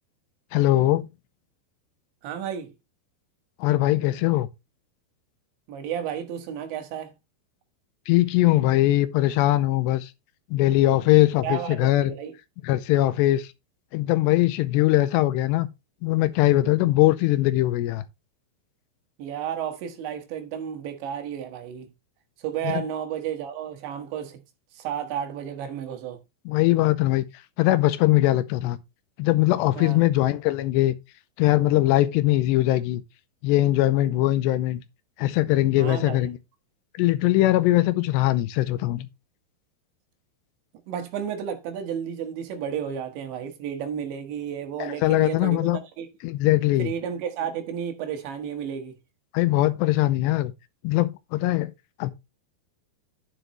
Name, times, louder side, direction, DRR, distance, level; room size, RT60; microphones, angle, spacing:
voice 1, 0.5-1.1 3.6-4.5 8.1-10.1 10.5-12.1 12.6-13.5 13.9-15.7 16.0-18.0 22.7-22.8 26.5-27.2 27.6-28.8 29.2-30.9 31.4-33.0 33.4-34.8 35.2-36.4 37.0-39.1 44.8-45.8 46.2-46.9 49.3-50.5 50.8-51.7 52.0-52.1, left 16 dB, 85° left, 2.8 m, -21 dB
voice 2, 2.2-2.7 5.7-7.1 11.4-12.3 19.2-21.9 22.4-24.4 24.7-26.2 29.8-30.0 35.8-36.3 40.9-45.7 46.0-46.1 46.8-49.0, right 8 dB, 85° right, 3.9 m, -32 dB
10.0 x 7.7 x 3.1 m
omnidirectional pair, 5.0 m